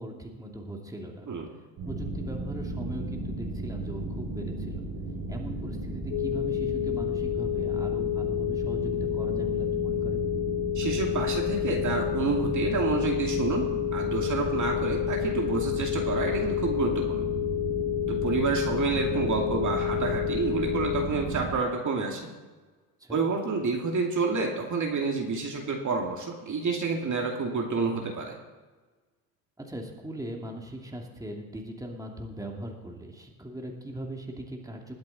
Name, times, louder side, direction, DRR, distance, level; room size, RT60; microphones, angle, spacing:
voice 1, 0.0-1.3 1.8-4.8 5.3-10.2 23.0-23.2 29.6-35.0, right 1 dB, 5° right, 1 dB, 2.8 m, -39 dB
sound 1, 1.8-21.5, right 2 dB, 70° right, 4.6 m, -35 dB
sound 2, 6.1-21.1, left 14 dB, 50° left, 0.9 m, -30 dB
voice 2, 10.7-13.7 13.9-17.3 18.1-22.3 23.1-28.4, right 4 dB, 35° right, 1 dB, 2.5 m, -29 dB
21.0 x 8.0 x 4.3 m, 1.3 s
hypercardioid pair, 75°, 48 cm